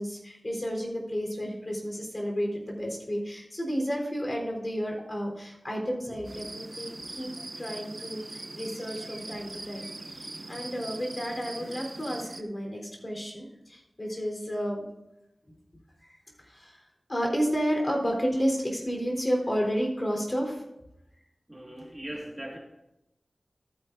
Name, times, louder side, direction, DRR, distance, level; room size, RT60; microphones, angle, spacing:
voice 1, 0.0-14.8 16.4-16.8 17.1-20.6, equal, 35° left, 0 dB, 3.9 m, -31 dB
sound 1, 6.2-12.4, right 2 dB, 50° right, 0.6 m, -41 dB
voice 2, 21.5-22.6, right 1 dB, 20° right, -1 dB, 1.9 m, -39 dB
14.0 x 9.9 x 2.7 m, 0.90 s
cardioid pair, 40°, 0 cm